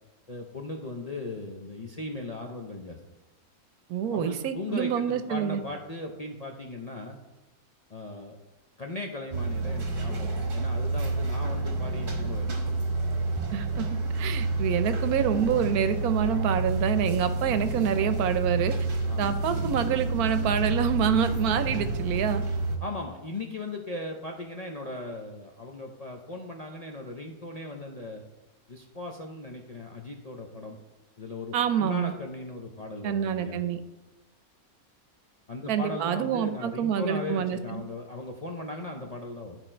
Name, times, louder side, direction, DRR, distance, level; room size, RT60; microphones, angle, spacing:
voice 1, 0.3-3.0 4.1-7.2 7.9-8.4 8.8-12.5 19.1-19.4 22.8-28.2 28.7-30.8 31.2-33.6 35.5-39.6, left 2 dB, 50° left, 1 dB, 0.4 m, -38 dB
voice 2, 3.9-5.6 13.5-13.9 14.1-18.7 19.2-22.4 31.5-32.1 33.0-33.8 35.7-37.9, right 8 dB, 85° right, 11 dB, 1.2 m, -27 dB
sound 1, 9.3-22.8, right 2 dB, 40° right, 1.1 m, -29 dB
11.0 x 4.3 x 4.4 m, 1.0 s
omnidirectional pair, 1.5 m